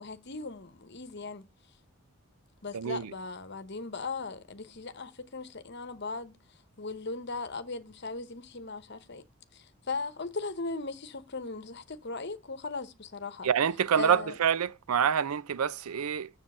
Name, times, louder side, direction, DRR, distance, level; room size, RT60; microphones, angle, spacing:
voice 1, 0.0-1.4 2.6-6.4 6.8-9.2 9.5-13.5 13.9-14.3, left 3 dB, 50° left, 1.0 m, -38 dB
voice 2, 2.7-3.1 13.4-16.3, right 7 dB, 90° right, 0.5 m, -27 dB
7.4 x 7.1 x 6.6 m
head